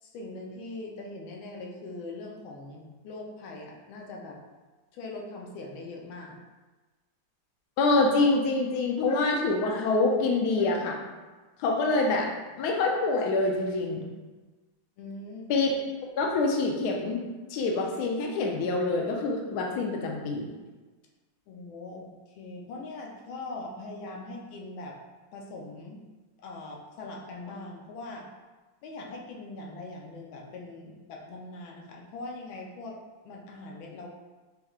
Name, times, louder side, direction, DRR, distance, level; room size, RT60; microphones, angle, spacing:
voice 1, 0.0-4.4 4.9-6.4 15.0-15.5 21.5-25.0 25.3-26.0 26.4-28.3 28.8-33.0 33.2-34.1, left 2 dB, 90° left, 0 dB, 1.5 m, -41 dB
voice 2, 7.8-11.0 11.6-12.3 12.6-14.0 15.5-15.7 16.2-17.2 17.5-20.5, left 3 dB, 65° left, 0 dB, 1.0 m, -26 dB
6.7 x 3.0 x 2.4 m, 1.3 s
omnidirectional pair, 2.1 m